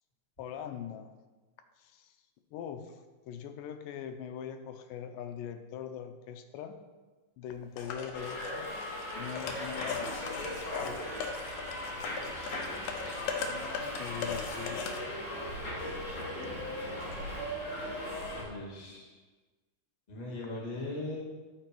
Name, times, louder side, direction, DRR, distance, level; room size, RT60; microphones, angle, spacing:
voice 1, 0.4-1.1 1.8-2.1 2.5-3.0 3.3-6.8 7.4-8.7 9.2-10.1 10.6-11.1 14.0-14.9, left 8 dB, 85° left, 7 dB, 2.3 m, -41 dB
sound 1, 7.8-15.0, left 5 dB, 70° left, 2.1 m, -39 dB
Subway metro underground, 8.1-18.4, left 1 dB, 40° left, 3.6 m, -38 dB
voice 2, 18.4-19.0 20.1-21.2, left 2 dB, 15° left, -4 dB, 1.5 m, -39 dB
13.5 x 5.2 x 4.6 m, 1.3 s
omnidirectional pair, 3.9 m